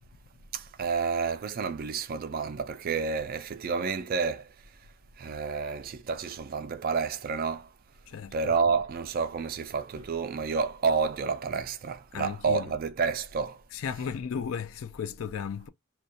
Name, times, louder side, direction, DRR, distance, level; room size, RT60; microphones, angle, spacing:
voice 1, 0.5-4.5 5.2-7.7 8.3-13.6, right 5 dB, 45° right, 0.3 m, -30 dB
voice 2, 8.1-8.5 9.9-10.1 12.1-12.7 13.7-15.7, left 7 dB, 65° left, 0.4 m, -35 dB
2.3 x 2.2 x 2.5 m
head